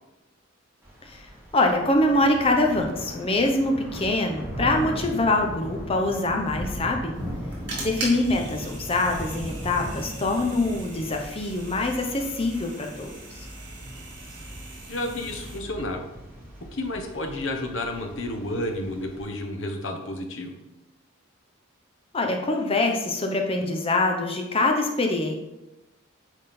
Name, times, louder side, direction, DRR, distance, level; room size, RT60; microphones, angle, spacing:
Thunder / Rain, 0.8-19.2, equal, 10° right, 2.0 m, -38 dB
voice 1, 1.5-7.1 7.8-13.1 22.1-25.4, left 2 dB, 25° left, 3 dB, 0.7 m, -24 dB
sound 1, 7.1-15.6, right 2 dB, 60° right, 2.0 m, -40 dB
voice 2, 14.9-16.0 16.7-20.6, left 1 dB, 60° left, 4 dB, 1.0 m, -31 dB
9.0 x 3.6 x 4.2 m, 0.98 s
head